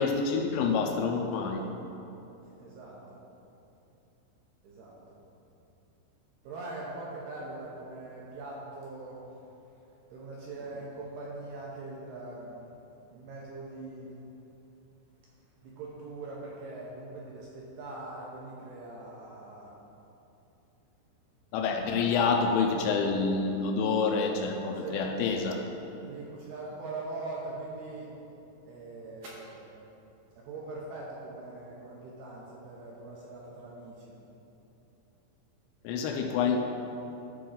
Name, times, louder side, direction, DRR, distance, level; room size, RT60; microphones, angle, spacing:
voice 1, 0.0-1.7 21.5-25.6 35.8-36.6, left 5 dB, 85° left, 2 dB, 2.8 m, -27 dB
voice 2, 2.4-3.2 4.6-5.2 6.4-9.2 10.1-12.6 13.1-14.1 15.6-19.7 24.7-25.5 26.0-28.1 28.6-29.7 30.3-34.2, right 2 dB, 75° right, -5 dB, 2.4 m, -42 dB
13.0 x 4.6 x 3.9 m, 2.9 s
omnidirectional pair, 5.4 m